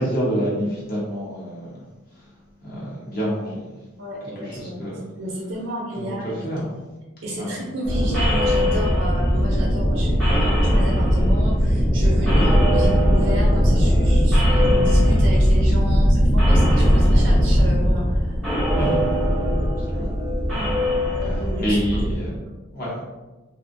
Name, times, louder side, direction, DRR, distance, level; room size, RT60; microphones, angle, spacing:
voice 1, 0.0-1.7 2.6-3.7 4.4-5.0 6.0-6.6 7.4-7.6 12.3-12.5 18.8-19.0 19.9-20.1 20.5-20.7 21.6-22.4 22.7-23.0, equal, 45° left, -7 dB, 0.8 m, -27 dB
voice 2, 4.0-4.8 5.2-6.3 7.2-18.4 18.7-18.9 21.1-21.8, equal, 60° right, -2 dB, 0.4 m, -31 dB
sound 1, 7.8-22.2, equal, ahead, 0.6 m, -18 dB
2.5 x 2.1 x 2.5 m, 1.1 s
head